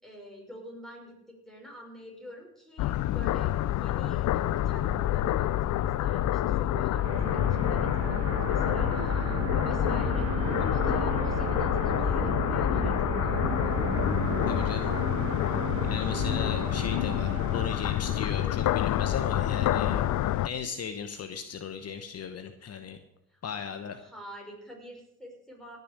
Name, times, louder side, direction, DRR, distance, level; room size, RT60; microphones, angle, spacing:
voice 1, 0.0-13.8 23.3-25.8, equal, ahead, -1 dB, 5.6 m, -46 dB
sound 1, 2.8-20.5, left 14 dB, 75° left, 0.5 m, -28 dB
sound 2, 4.2-14.7, right 2 dB, 30° right, 1.8 m, -36 dB
sound 3, 7.0-20.4, right 5 dB, 55° right, 1.9 m, -37 dB
voice 2, 14.5-14.9 15.9-20.0 20.4-23.0 23.4-24.0, left 7 dB, 55° left, 8 dB, 1.1 m, -37 dB
17.5 x 6.9 x 6.6 m, 0.77 s
cardioid pair, 90°, 30 cm